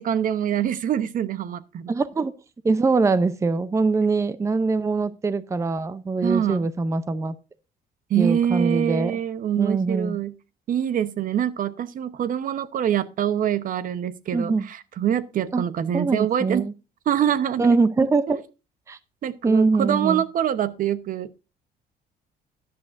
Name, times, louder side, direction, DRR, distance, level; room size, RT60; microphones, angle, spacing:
voice 1, 0.0-1.9 6.2-6.7 8.1-10.3 10.7-16.7 17.1-18.4 19.2-21.4, right 9 dB, 55° right, 0.9 m, -25 dB
voice 2, 1.9-2.3 2.6-7.3 8.2-9.1 9.6-10.2 14.3-14.7 15.5-15.6 15.9-16.7 17.6-18.4 18.9-19.0 19.4-20.2, right 3 dB, 15° right, 0.6 m, -22 dB
13.0 x 10.5 x 2.5 m
cardioid pair, 110°, 17 cm